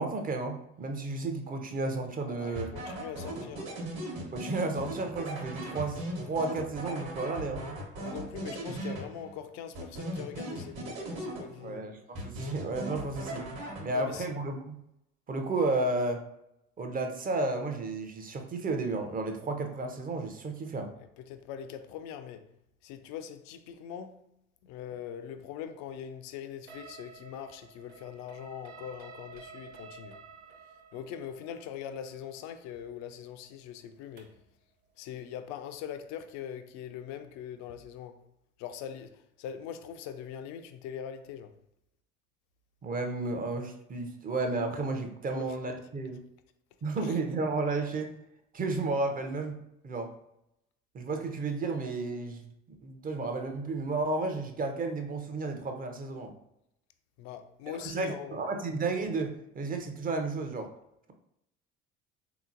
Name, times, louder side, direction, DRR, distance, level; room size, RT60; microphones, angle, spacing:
voice 1, 0.0-2.7 4.3-7.7 11.6-13.4 13.8-14.8 15.3-16.2 16.8-20.9 42.8-46.2 46.8-48.1 48.5-49.6 49.8-50.1 50.9-52.5 52.8-56.3 57.7-60.7, right 3 dB, 25° right, 0.6 m, -32 dB
voice 2, 2.4-3.8 8.0-11.9 13.9-14.3 21.2-22.5 22.8-24.2 24.6-30.2 30.9-34.3 35.0-38.2 38.6-41.5 45.3-45.6 47.0-47.1 57.2-58.4, left 9 dB, 55° left, 0.5 m, -42 dB
sound 1, 2.6-9.4 9.7-11.8 12.2-14.2, right 1 dB, 45° right, 1.1 m, -38 dB
sound 2, 26.7-34.5, right 5 dB, 85° right, 0.5 m, -52 dB
3.6 x 2.8 x 2.5 m
hypercardioid pair, 65°, 33 cm